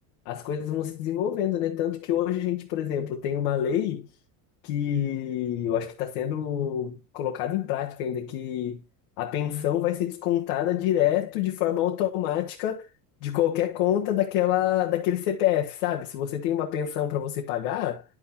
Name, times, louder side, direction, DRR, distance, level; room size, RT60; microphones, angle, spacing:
voice 1, 0.2-4.1 4.6-8.8 9.2-12.9 13.2-18.0, left 11 dB, 85° left, 1.5 m, -27 dB
10.5 x 6.1 x 2.8 m
cardioid pair, 140°, 44 cm